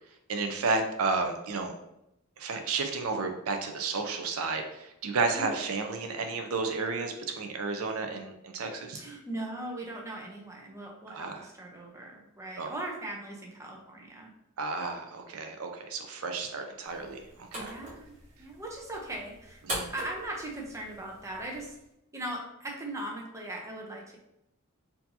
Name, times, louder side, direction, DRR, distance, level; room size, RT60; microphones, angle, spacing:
voice 1, 0.3-1.7 2.4-9.0 11.1-11.5 12.6-12.7 14.6-17.2 17.5-17.7 19.7-19.9, right 3 dB, 85° right, 5 dB, 0.5 m, -32 dB
voice 2, 8.9-14.3 17.5-19.6 19.9-21.7 22.1-24.2, right 1 dB, 15° right, -1 dB, 0.7 m, -39 dB
sound 1, 16.8-21.9, right 1 dB, 40° right, 1.3 m, -42 dB
4.3 x 2.7 x 2.7 m, 0.84 s
head